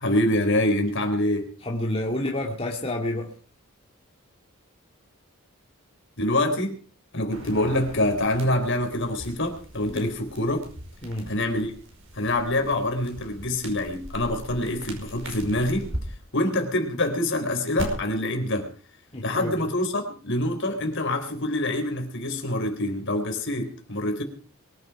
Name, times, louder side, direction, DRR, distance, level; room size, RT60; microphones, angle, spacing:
voice 1, 0.0-1.5 6.2-6.8 7.1-10.6 11.3-11.7 12.1-15.9 16.3-18.7 19.2-24.2, left 1 dB, 60° left, 5 dB, 3.8 m, -25 dB
voice 2, 1.6-3.3 9.9-10.1 11.0-11.3 19.1-19.5, left 1 dB, 25° left, -1 dB, 2.4 m, -29 dB
sound 1, 7.3-16.0 17.8-17.9, right 1 dB, 65° right, 5.5 m, -40 dB
23.0 x 8.9 x 5.8 m, 0.40 s
head